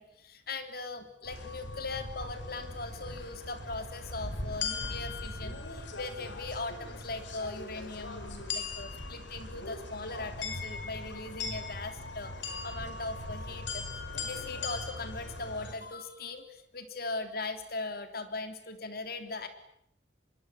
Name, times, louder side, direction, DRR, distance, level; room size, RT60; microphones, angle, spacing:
voice 1, 0.0-13.8 14.2-19.5, left 3 dB, 55° left, 8 dB, 3.6 m, -40 dB
sound 1, 1.2-15.7, left 3 dB, 85° left, 5.6 m, -39 dB
25.5 x 23.0 x 10.0 m, 0.74 s
head